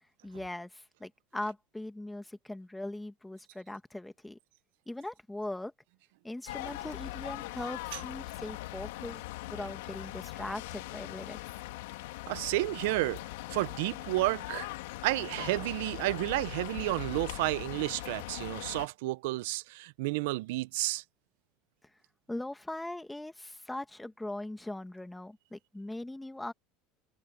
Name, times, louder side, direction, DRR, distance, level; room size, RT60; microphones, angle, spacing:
voice 1, 0.2-4.4 4.9-5.7 6.2-9.2 9.5-11.4 22.3-26.5, left 1 dB, 5° left, 2.4 m, -40 dB
sound 1, 6.5-18.9, left 18 dB, 80° left, 1.9 m, -41 dB
voice 2, 12.3-13.2 13.5-14.7 15.0-21.0, right 20 dB, 75° right, 0.9 m, -31 dB
supercardioid pair, 95°, 0 cm